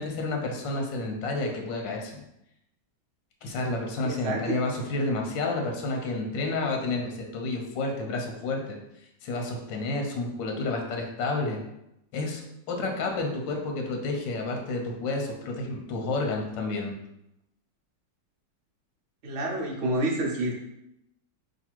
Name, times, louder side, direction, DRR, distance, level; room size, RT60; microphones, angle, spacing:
voice 1, 0.0-2.2 3.4-8.8 9.2-11.6 12.1-12.4 12.7-16.9, left 2 dB, 90° left, 1 dB, 1.4 m, -30 dB
voice 2, 4.0-4.4 19.2-20.5, right 1 dB, 60° right, -2 dB, 0.7 m, -28 dB
3.3 x 2.4 x 4.4 m, 0.83 s
omnidirectional pair, 2.0 m